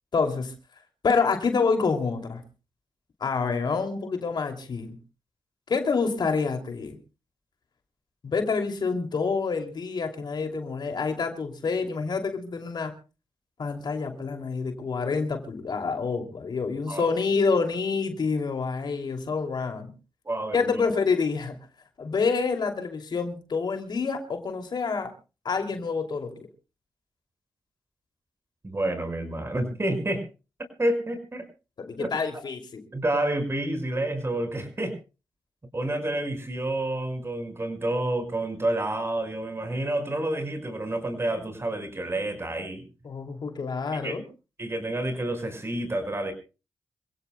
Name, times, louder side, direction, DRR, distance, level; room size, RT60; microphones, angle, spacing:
voice 1, 0.1-0.5 1.0-2.4 3.2-5.0 5.7-7.0 8.2-12.9 13.6-19.9 20.5-21.6 22.0-25.1 25.4-26.5 31.8-32.8 43.0-44.2, left 4 dB, 65° left, 5 dB, 2.8 m, -27 dB
voice 2, 20.3-20.8 28.6-30.2 30.8-31.4 32.0-32.1 32.9-35.0 35.7-42.8 43.9-44.2 44.6-46.3, right 1 dB, 35° right, 7 dB, 5.5 m, -29 dB
26.5 x 16.5 x 2.3 m, 0.31 s
cardioid pair, 50°, 8 cm